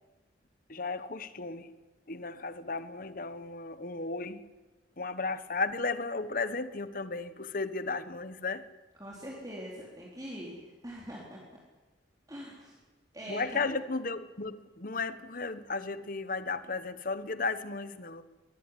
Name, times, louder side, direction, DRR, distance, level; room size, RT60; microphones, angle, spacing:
voice 1, 0.7-1.7 2.1-4.5 5.0-8.7 13.3-18.2, left 3 dB, 45° left, 1.2 m, -34 dB
voice 2, 9.0-11.4 12.3-12.8 13.1-13.7, equal, 20° right, 4.1 m, -43 dB
23.0 x 19.0 x 9.9 m
head